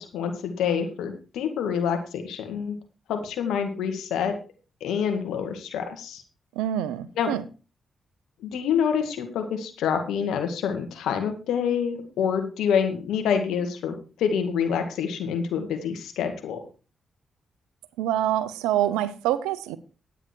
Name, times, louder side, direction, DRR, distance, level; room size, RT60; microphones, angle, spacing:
voice 1, 0.0-2.8 3.1-4.3 4.8-6.2 7.2-7.3 8.4-16.6, left 7 dB, 80° left, 2.0 m, -27 dB
voice 2, 6.6-7.4 18.0-19.8, right 12 dB, 90° right, 0.7 m, -26 dB
10.5 x 9.0 x 4.5 m
supercardioid pair, 45°, 0 cm